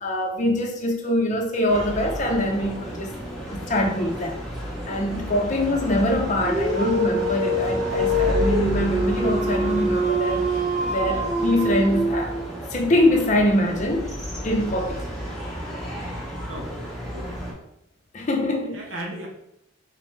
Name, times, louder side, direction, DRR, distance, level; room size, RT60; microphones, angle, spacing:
voice 1, 0.0-3.1 3.5-4.4 4.9-10.5 10.8-12.4 12.7-15.0 18.1-18.8, left 1 dB, 40° left, 3 dB, 0.5 m, -24 dB
sound 1, 1.7-17.5, equal, ahead, 0.8 m, -32 dB
Dog, 6.2-12.6, equal, 40° right, 0.6 m, -25 dB
voice 2, 16.4-17.5 18.7-19.3, right 1 dB, 90° right, 0 dB, 1.0 m, -37 dB
4.1 x 3.1 x 3.1 m, 0.80 s
head